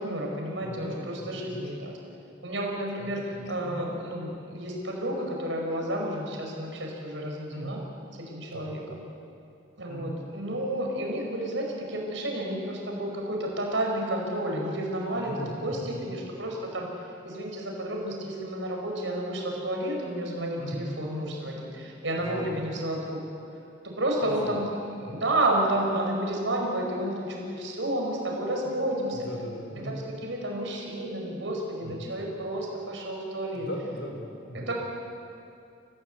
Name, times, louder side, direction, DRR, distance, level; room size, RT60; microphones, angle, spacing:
voice 1, 0.0-2.0 2.4-7.8 8.2-8.8 9.8-16.9 17.2-23.2 23.8-29.3 29.7-33.7 34.5-34.7, right 1 dB, 80° right, 0 dB, 5.2 m, -31 dB
voice 2, 0.6-1.7 3.0-3.8 7.5-7.8 8.5-8.8 9.9-10.1 15.2-16.1 20.6-20.9 22.2-22.6 24.2-24.5 25.0-25.2 29.1-29.9 31.8-32.1 33.5-34.7, equal, 75° left, 2 dB, 4.6 m, -38 dB
28.5 x 15.5 x 8.2 m, 2.5 s
head